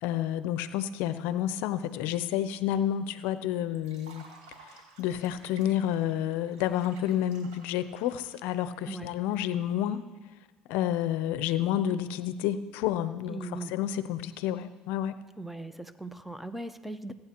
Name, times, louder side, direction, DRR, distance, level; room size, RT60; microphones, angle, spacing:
voice 1, 0.0-4.3 4.6-10.0 10.7-15.2, left 11 dB, 75° left, 13 dB, 0.5 m, -30 dB
Liquid, 3.7-9.9, right 4 dB, 90° right, 2.8 m, -55 dB
voice 2, 13.3-13.7 15.4-17.1, right 2 dB, 5° right, 12 dB, 0.6 m, -38 dB
16.5 x 8.7 x 2.9 m, 1.3 s
supercardioid pair, 80°, 3 cm